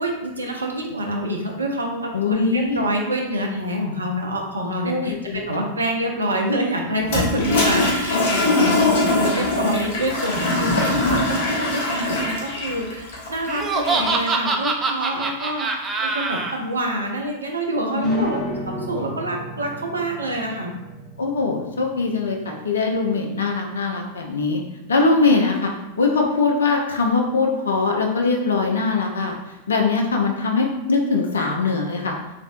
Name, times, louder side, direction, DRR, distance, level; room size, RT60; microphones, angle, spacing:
voice 1, 0.0-20.7, right 1 dB, 75° right, 1 dB, 0.5 m, -27 dB
voice 2, 2.1-2.8 4.8-5.6 8.6-9.1 9.3-9.5 17.9-18.3 21.2-24.6 24.9-25.7 26.0-29.3 29.7-32.1, left 4 dB, 70° left, 1 dB, 0.3 m, -22 dB
Toilet flush, 7.0-14.3, left 2 dB, 55° left, 0.8 m, -22 dB
Laughter, 13.5-16.5, right 3 dB, 20° right, 0.3 m, -24 dB
sound 1, 18.0-23.2, equal, 5° right, 1.5 m, -36 dB
3.1 x 2.5 x 2.5 m, 1.0 s
figure-of-eight pair, 90°, 0 cm